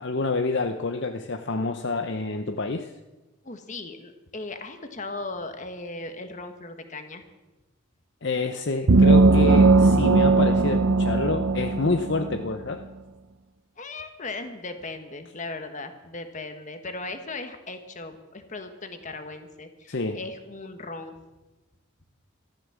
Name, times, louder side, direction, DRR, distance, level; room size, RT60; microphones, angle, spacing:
voice 1, 0.0-2.9 8.2-12.8 19.9-20.2, left 3 dB, 55° left, 7 dB, 0.7 m, -27 dB
voice 2, 3.4-7.2 13.8-21.2, left 3 dB, 35° left, 7 dB, 1.5 m, -37 dB
sound 1, 8.9-12.4, right 3 dB, 75° right, 0.7 m, -18 dB
14.0 x 13.5 x 7.4 m, 1.1 s
head